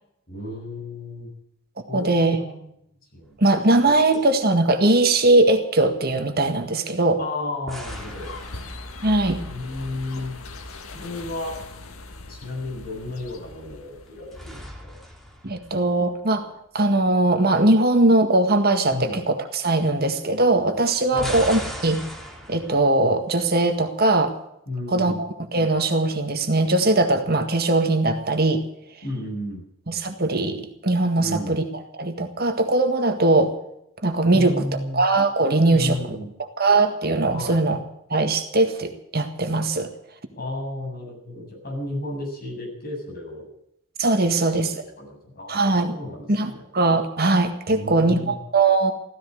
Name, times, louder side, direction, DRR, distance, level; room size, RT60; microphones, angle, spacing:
voice 1, 0.3-1.3 1.9-2.7 3.1-3.4 3.8-4.0 7.2-8.4 9.4-11.6 12.3-15.0 18.9-19.2 21.1-21.4 24.7-25.2 29.0-29.6 31.2-31.6 34.3-35.0 35.7-36.3 37.3-37.6 40.3-43.5 44.2-46.6 47.7-48.4, left 2 dB, 45° left, 0 dB, 7.8 m, -33 dB
voice 2, 1.9-2.4 3.4-7.2 9.0-9.4 15.4-16.5 16.7-22.0 22.5-24.4 24.9-28.6 29.9-31.6 32.0-33.6 34.0-34.7 34.9-36.2 36.6-37.8 38.1-39.9 44.0-44.7 45.5-45.9 46.3-48.9, right 2 dB, 45° right, 6 dB, 1.8 m, -20 dB
sound 1, 3.2-3.9 4.1-4.3 7.7-9.3 13.9-16.4 20.9-22.9, equal, ahead, 2.8 m, -38 dB
sound 2, 7.9-14.6, left 2 dB, 85° left, 1.8 m, -40 dB
15.5 x 14.5 x 6.4 m, 0.77 s
head